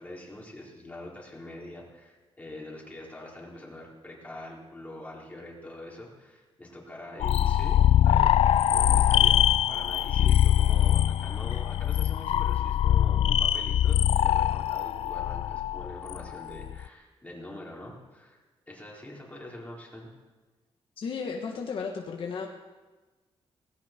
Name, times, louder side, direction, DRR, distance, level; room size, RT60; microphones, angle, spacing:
voice 1, 0.0-18.4 18.7-20.1, left 1 dB, 15° left, -3 dB, 4.2 m, -44 dB
sound 1, 7.2-16.8, left 11 dB, 75° left, 0.4 m, -23 dB
voice 2, 21.0-22.5, left 5 dB, 60° left, 1 dB, 1.6 m, -34 dB
18.0 x 16.5 x 4.5 m, 1.2 s
cardioid pair, 125°, 10 cm